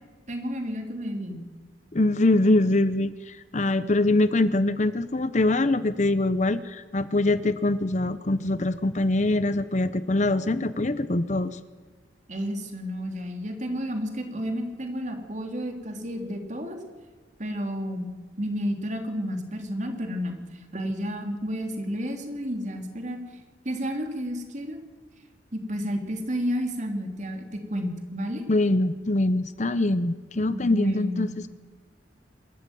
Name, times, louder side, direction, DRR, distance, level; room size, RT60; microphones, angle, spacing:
voice 1, 0.3-1.4 12.3-16.8 17.4-18.1 18.4-20.4 20.7-23.2 23.6-24.8 25.5-28.4 30.5-31.3, equal, 40° right, 4 dB, 3.5 m, -31 dB
voice 2, 1.9-11.6 28.5-31.5, left 2 dB, 40° left, 14 dB, 0.8 m, -23 dB
26.5 x 14.0 x 9.3 m, 1.3 s
head